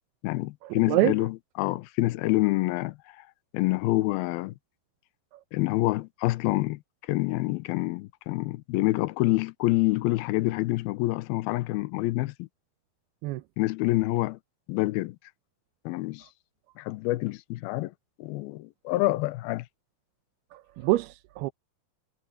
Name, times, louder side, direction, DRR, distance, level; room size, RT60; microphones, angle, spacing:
voice 1, 0.2-3.2 3.5-4.5 5.5-6.8 7.1-12.5 13.6-14.4 14.7-15.2 15.9-16.3 16.8-17.9 18.2-19.7, left 20 dB, 80° left, 2.5 m, -27 dB
voice 2, 20.8-21.5, right 17 dB, 85° right, 2.7 m, -24 dB
omnidirectional pair, 4.5 m